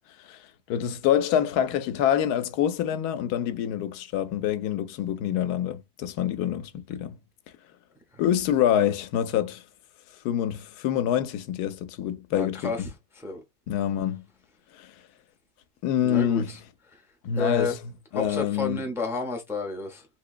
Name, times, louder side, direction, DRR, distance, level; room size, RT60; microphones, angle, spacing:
voice 1, 0.2-7.2 8.2-9.6 10.2-12.8 13.7-14.2 14.7-14.9 15.8-16.6 17.2-17.8 18.1-18.8, left 10 dB, 90° left, 1.1 m, -26 dB
voice 2, 12.3-12.9 13.2-13.4 16.0-16.6 16.9-17.0 17.4-17.8 18.1-20.1, left 4 dB, 5° right, 0.6 m, -31 dB
3.6 x 2.9 x 2.4 m
omnidirectional pair, 1.6 m